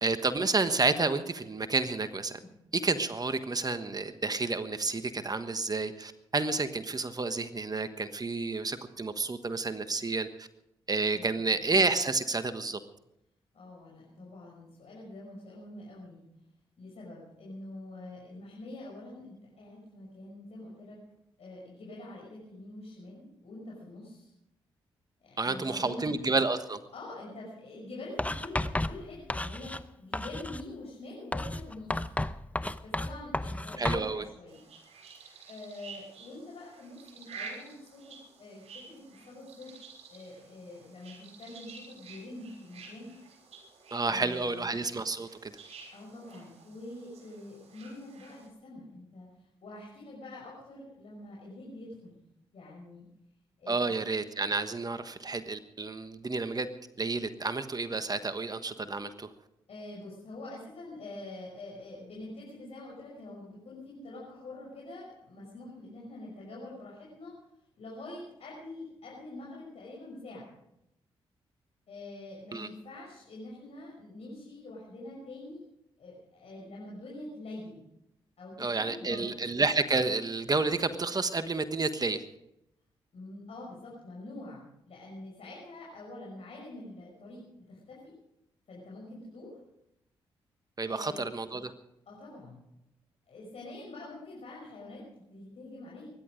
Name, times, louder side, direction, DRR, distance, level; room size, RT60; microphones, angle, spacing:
voice 1, 0.0-2.4 2.7-10.5 10.9-12.8 25.4-26.8 33.8-34.2 43.9-45.5 53.7-56.7 57.0-59.3 72.5-72.7 78.6-82.2 90.8-91.7, right 3 dB, 35° right, 10 dB, 1.3 m, -30 dB
voice 2, 13.5-16.2 16.8-21.0 21.4-24.3 25.2-26.1 26.9-32.0 32.8-34.6 35.5-39.7 40.1-43.1 44.1-44.7 45.9-52.2 52.5-53.0 53.6-53.9 59.7-67.3 67.8-70.5 71.9-75.6 76.0-77.8 78.4-79.5 83.1-87.4 87.7-88.1 88.7-89.6 90.8-91.3 92.1-92.6 93.3-95.0 95.3-96.1, left 2 dB, 60° left, -4 dB, 5.8 m, -45 dB
Writing, 28.2-29.9 30.1-30.7 31.3-34.1, left 1 dB, 10° left, 0.8 m, -33 dB
sound 1, 34.5-48.5, right 5 dB, 70° right, 5.5 m, -50 dB
23.0 x 11.0 x 5.2 m, 0.83 s
hypercardioid pair, 45°, 11 cm